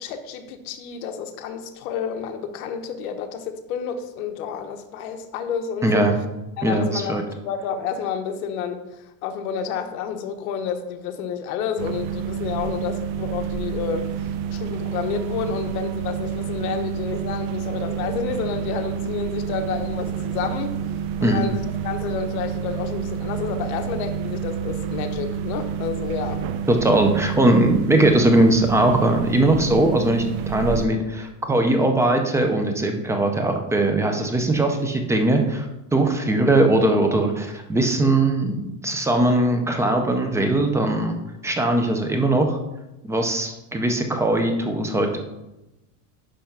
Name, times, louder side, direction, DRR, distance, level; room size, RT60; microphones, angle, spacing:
voice 1, 0.0-6.2 6.6-20.8 21.2-26.5, left 7 dB, 70° left, 6 dB, 1.2 m, -30 dB
voice 2, 5.8-6.1 6.6-7.2 21.2-21.5 26.7-35.7 35.9-41.2 41.4-42.6 43.0-45.2, right 1 dB, 5° right, 4 dB, 0.4 m, -20 dB
sound 1, 11.8-30.9, right 8 dB, 50° right, 0.7 m, -29 dB
10.0 x 3.4 x 5.7 m, 0.97 s
supercardioid pair, 150°, 44 cm